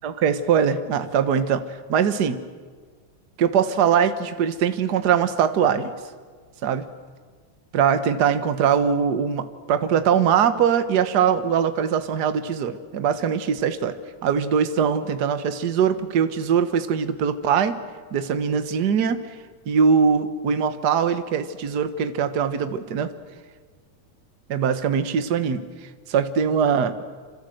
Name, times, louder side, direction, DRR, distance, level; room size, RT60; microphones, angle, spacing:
voice 1, 0.0-2.4 3.4-5.9 6.6-6.9 7.7-14.0 14.2-17.8 18.1-19.3 19.6-23.1 24.5-25.6 26.1-27.0, right 7 dB, 50° right, 10 dB, 1.2 m, -22 dB
26.5 x 26.5 x 7.9 m, 1.5 s
omnidirectional pair, 3.5 m